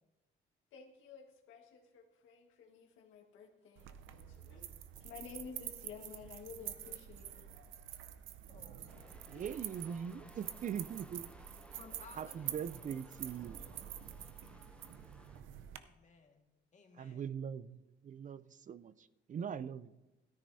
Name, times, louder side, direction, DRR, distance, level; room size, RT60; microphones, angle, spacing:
voice 1, 0.7-3.9 4.2-4.7 5.0-7.5, left 6 dB, 85° left, 3 dB, 1.6 m, -52 dB
sound 1, 3.8-15.8, right 11 dB, 80° right, 0.7 m, -47 dB
voice 2, 8.5-9.6 11.8-12.5 15.7-17.3 19.3-19.4, left 4 dB, 40° left, 3 dB, 1.8 m, -59 dB
Drug Sequence, 8.9-15.4, left 1 dB, 5° left, 0.6 m, -60 dB
voice 3, 9.3-11.3 12.2-13.6 17.0-19.9, right 8 dB, 40° right, 16 dB, 0.4 m, -42 dB
13.5 x 13.0 x 2.7 m, 1.0 s
cardioid pair, 90°, 20 cm